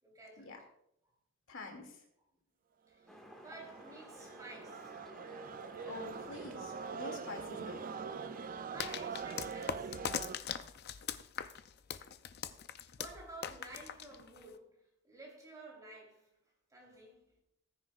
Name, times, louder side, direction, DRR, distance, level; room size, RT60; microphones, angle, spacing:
voice 1, 0.0-0.5 2.9-4.9 8.7-10.0 12.7-16.4 16.7-17.4, right 2 dB, 15° right, 3.6 m, -52 dB
voice 2, 1.5-2.0 5.9-7.9, left 2 dB, 65° left, 2.4 m, -46 dB
sound 1, 3.1-8.6, equal, ahead, 1.8 m, -54 dB
sound 2, 3.1-10.4, right 6 dB, 40° right, 0.5 m, -44 dB
sound 3, 8.8-14.6, left 7 dB, 50° left, 0.5 m, -41 dB
19.0 x 9.7 x 2.4 m
head